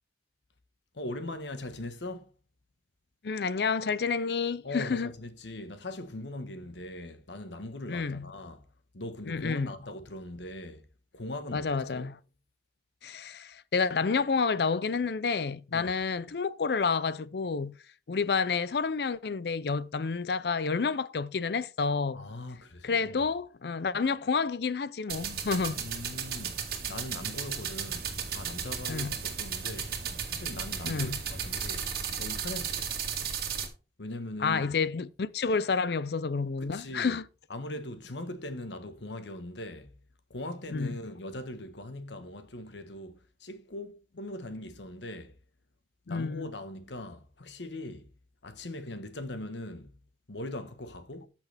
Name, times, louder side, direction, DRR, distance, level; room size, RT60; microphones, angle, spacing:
voice 1, 0.9-2.3 4.6-8.7 8.9-10.9 11.1-12.1 15.7-15.9 22.1-23.2 25.8-26.6 26.9-29.9 30.3-31.9 32.2-33.0 34.0-34.7 36.6-37.2 37.5-39.9 40.3-45.3 46.1-48.1 48.4-49.9 50.3-51.3, left 1 dB, 85° left, 1.3 m, -40 dB
voice 2, 3.2-5.1 7.9-8.3 9.3-9.7 11.5-12.1 13.0-17.8 18.1-22.3 22.8-25.8 28.9-29.1 30.8-31.2 34.4-37.2 40.7-41.0 46.1-46.5, left 5 dB, 65° left, 0.5 m, -29 dB
sound 1, 25.1-33.7, right 7 dB, 55° right, 1.8 m, -35 dB
14.0 x 6.0 x 3.4 m
head